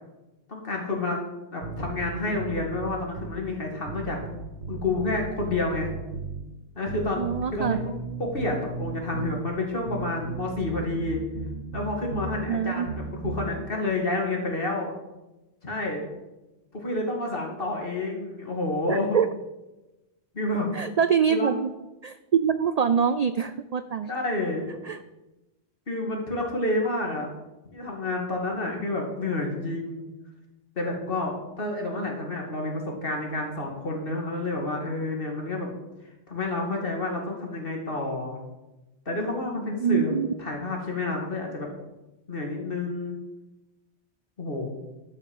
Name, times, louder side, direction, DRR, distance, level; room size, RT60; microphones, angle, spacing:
voice 1, 0.5-1.2 1.5-4.2 4.7-5.9 6.8-7.9 8.2-11.2 11.7-14.9 15.6-16.0 16.7-19.2 20.3-20.7 21.3-21.5 24.1-24.7 25.9-27.3 27.7-30.0 30.8-35.7 36.3-38.4 39.1-40.1 40.4-41.7 42.3-43.2 44.4-44.7, left 2 dB, 55° left, 1 dB, 2.4 m, -29 dB
sound 1, 1.6-3.4 3.9-6.5 6.9-9.4 9.9-12.4 12.9-13.5, right 4 dB, 75° right, 1.4 m, -35 dB
voice 2, 7.2-7.8 12.5-12.9 18.9-19.3 20.7-21.7 22.0-24.1 24.8-25.0 39.8-40.3, right 7 dB, 60° right, 11 dB, 0.4 m, -24 dB
11.5 x 5.6 x 7.1 m, 1.0 s
omnidirectional pair, 1.1 m